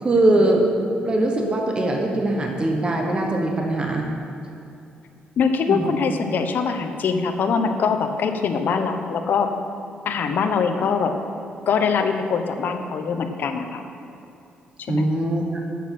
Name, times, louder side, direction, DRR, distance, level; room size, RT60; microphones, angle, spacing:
voice 1, 0.0-0.6 1.0-4.1 5.7-5.9 14.9-15.5, right 2 dB, 25° right, 1 dB, 1.2 m, -21 dB
voice 2, 5.4-9.5 10.0-11.1 11.7-13.8 14.9-15.1, left 5 dB, 65° left, 6 dB, 0.8 m, -23 dB
8.4 x 7.0 x 5.9 m, 2.7 s
cardioid pair, 95°, 4 cm